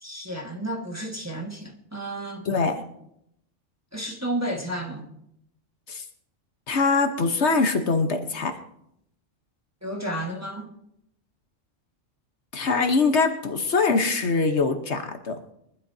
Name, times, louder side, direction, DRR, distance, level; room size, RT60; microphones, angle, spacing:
voice 1, 0.0-2.5 3.9-5.2 9.8-10.7, right 1 dB, 15° right, 0 dB, 1.4 m, -32 dB
voice 2, 6.7-8.5 12.5-15.4, left 4 dB, 65° left, 6 dB, 1.3 m, -23 dB
23.0 x 12.0 x 2.7 m, 0.77 s
omnidirectional pair, 1.3 m